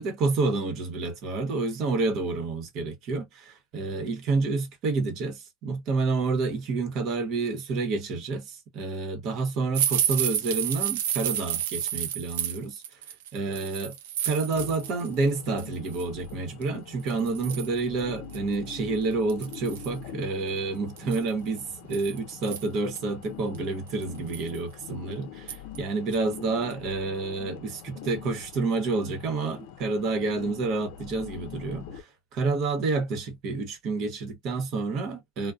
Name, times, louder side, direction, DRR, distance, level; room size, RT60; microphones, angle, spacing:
voice 1, 0.0-13.0 13.3-14.0 14.2-35.5, right 3 dB, 55° right, 1.0 m, -29 dB
sound 1, 9.7-15.1 15.4-16.0 16.6-16.7 17.1-17.8 18.3-18.4 18.7-18.8 19.3-20.0 21.0-23.0 23.5-23.6 24.0-24.6 25.5-25.8 26.1-26.3 26.7-26.8, right 10 dB, 85° right, 0.5 m, -30 dB
sound 2, 14.5-32.0, left 8 dB, 75° left, 0.5 m, -44 dB
2.4 x 2.2 x 2.4 m
supercardioid pair, 110°, 0 cm